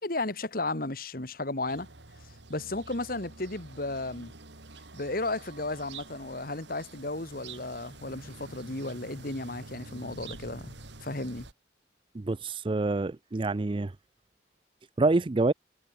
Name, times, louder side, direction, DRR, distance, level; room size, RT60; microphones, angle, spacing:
voice 1, 0.0-1.9 2.2-4.3 4.9-10.8 11.0-11.5, left 2 dB, 55° left, 2.2 m, -34 dB
sound 1, 1.7-11.5, right 3 dB, 80° right, 3.0 m, -48 dB
voice 2, 12.1-14.0 15.0-15.5, right 2 dB, 30° right, 0.4 m, -27 dB
head